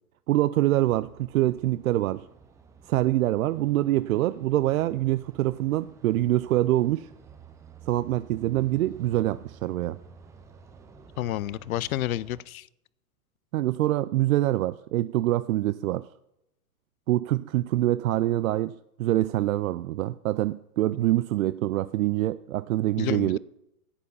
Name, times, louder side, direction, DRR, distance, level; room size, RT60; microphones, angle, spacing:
voice 1, 0.3-2.3 2.9-7.1 7.9-10.0 13.5-16.1 17.1-18.7 19.0-23.4, right 15 dB, 65° right, 15 dB, 0.5 m, -25 dB
sound 1, 0.8-12.4, right 6 dB, 5° right, 0.4 m, -52 dB
voice 2, 11.2-12.7 23.0-23.4, left 14 dB, 65° left, 22 dB, 0.6 m, -30 dB
9.8 x 8.3 x 6.9 m, 0.82 s
hypercardioid pair, 120°, 45 cm